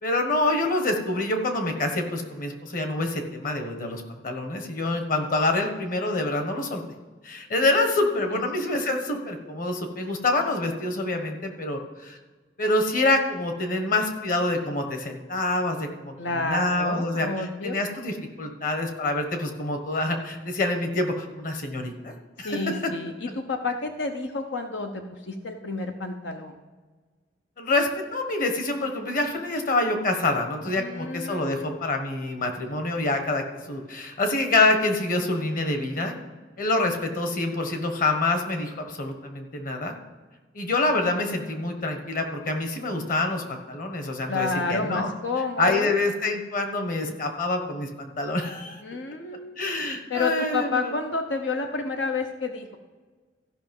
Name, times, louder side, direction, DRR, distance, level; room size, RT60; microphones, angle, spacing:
voice 1, 0.0-6.8 7.2-12.2 12.6-22.8 27.6-36.1 36.6-39.9 40.5-45.1 45.6-48.8 49.6-50.9, left 2 dB, 50° left, 5 dB, 1.4 m, -26 dB
voice 2, 16.2-17.8 22.4-26.5 30.7-31.8 44.3-45.9 48.8-49.6 50.1-52.8, left 3 dB, 85° left, 5 dB, 0.8 m, -30 dB
14.5 x 5.7 x 5.4 m, 1.3 s
head